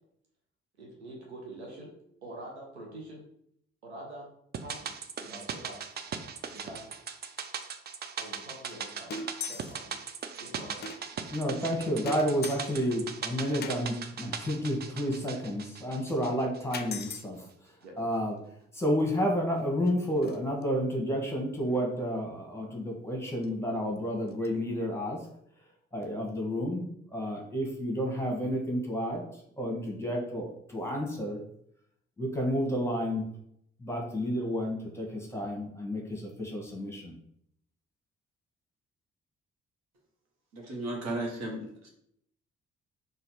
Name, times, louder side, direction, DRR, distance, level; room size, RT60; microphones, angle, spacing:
voice 1, 0.8-1.9 2.2-3.3 3.8-4.3 4.6-4.9 5.2-5.8 6.5-7.0 8.2-10.0 10.4-10.9 17.8-18.0, right 1 dB, 80° right, -1 dB, 0.8 m, -45 dB
sound 1, 4.5-16.9 17.2-17.3, right 6 dB, 30° right, 0.5 m, -39 dB
sound 2, 5.9-6.1 6.4-6.5 6.8-6.9 7.4-7.5 8.3-8.4 8.7-8.8 9.1-9.9 10.2-10.3 10.8-11.4 12.0-13.0 13.6-13.8 16.0-16.1 16.7-17.3 19.0-19.1 19.5-20.6 21.7-21.9 23.4-23.5 24.0-24.1 24.3-24.5, left 4 dB, 30° left, 0.5 m, -41 dB
voice 2, 11.3-17.4 18.0-18.4 18.7-25.2 25.9-29.2 29.6-31.4 32.2-33.2 33.8-37.1, equal, 10° left, 0 dB, 1.3 m, -31 dB
voice 3, 40.5-41.9, right 1 dB, 55° right, 0 dB, 1.3 m, -35 dB
4.1 x 2.6 x 4.4 m, 0.71 s
figure-of-eight pair, 40°, 32 cm